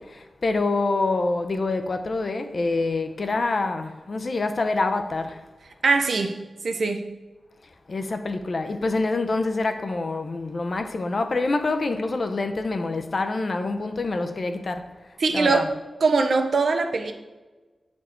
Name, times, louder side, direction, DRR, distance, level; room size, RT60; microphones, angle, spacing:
voice 1, 0.0-5.4 7.9-14.8 15.3-15.6, left 3 dB, 50° left, 0.6 m, -26 dB
voice 2, 5.8-6.4 6.6-7.0 15.2-15.7 16.0-17.1, right 4 dB, 75° right, 0.7 m, -21 dB
8.2 x 4.4 x 4.4 m
wide cardioid pair, 125°, 0 cm